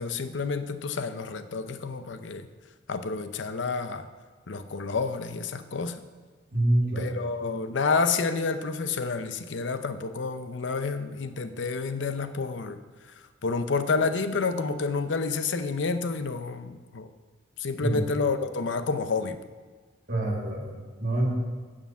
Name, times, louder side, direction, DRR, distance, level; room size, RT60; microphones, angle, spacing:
voice 1, 0.0-2.5 2.9-4.1 4.5-6.0 7.0-12.8 13.2-17.1 17.6-19.4, left 4 dB, 80° left, 10 dB, 0.6 m, -29 dB
voice 2, 6.5-7.1 17.8-18.0 20.1-20.7 21.0-21.3, right 1 dB, 55° right, -1 dB, 2.3 m, -26 dB
9.2 x 6.6 x 7.3 m, 1.4 s
head